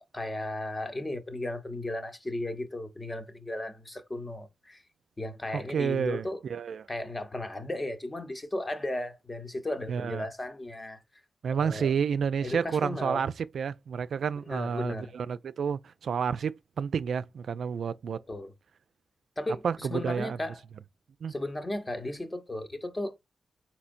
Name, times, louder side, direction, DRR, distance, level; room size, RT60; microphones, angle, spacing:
voice 1, 0.1-4.8 5.2-6.4 6.9-11.0 11.6-11.9 12.4-13.2 14.5-15.1 18.3-18.5 19.4-20.6 21.3-23.2, left 1 dB, 25° left, 0.9 m, -35 dB
voice 2, 5.5-6.8 9.9-10.3 11.4-18.2 19.6-20.4 21.2-21.3, right 6 dB, 80° right, 0.3 m, -30 dB
4.3 x 4.2 x 2.5 m
cardioid pair, 65°, 0 cm